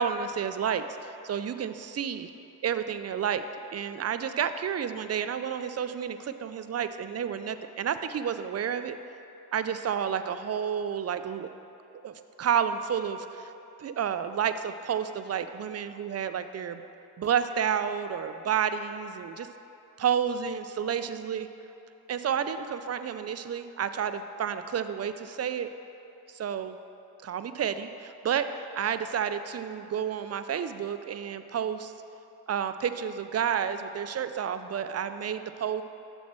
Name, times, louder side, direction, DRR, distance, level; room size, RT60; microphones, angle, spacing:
voice 1, 0.0-2.3 2.6-3.4 3.7-9.0 9.5-11.5 12.0-13.5 13.8-16.8 17.2-19.5 20.0-21.5 22.1-25.7 26.3-26.8 27.2-31.9 32.5-35.8, right 8 dB, 35° right, 11 dB, 0.4 m, -30 dB
7.1 x 4.4 x 6.1 m, 2.8 s
supercardioid pair, 50°, 48 cm